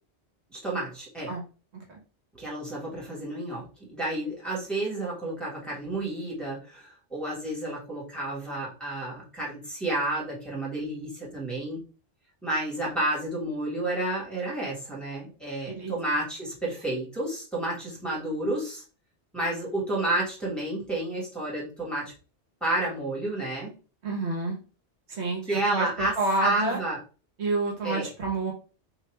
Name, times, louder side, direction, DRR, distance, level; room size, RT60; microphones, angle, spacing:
voice 1, 0.5-1.3 2.3-11.8 12.4-18.8 19.3-22.1 22.6-23.7 25.4-26.1 26.4-27.0 27.8-28.1, right 2 dB, ahead, -7 dB, 1.8 m, -30 dB
voice 2, 24.0-24.6 25.1-26.8 27.4-28.5, right 2 dB, 70° right, 1 dB, 1.4 m, -29 dB
3.2 x 2.8 x 4.5 m, 0.35 s
omnidirectional pair, 1.2 m